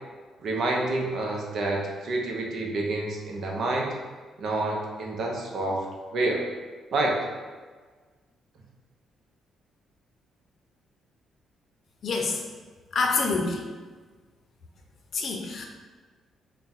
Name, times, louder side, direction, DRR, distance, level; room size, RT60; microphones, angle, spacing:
voice 1, 0.4-3.9 4.4-5.9 6.1-6.5 6.9-7.2, right 2 dB, 65° right, 0 dB, 0.7 m, -28 dB
voice 2, 12.0-12.4 12.9-13.6 15.1-15.7, left 4 dB, 55° left, 2 dB, 0.6 m, -26 dB
3.5 x 2.3 x 4.1 m, 1.4 s
cardioid pair, 90°, 0 cm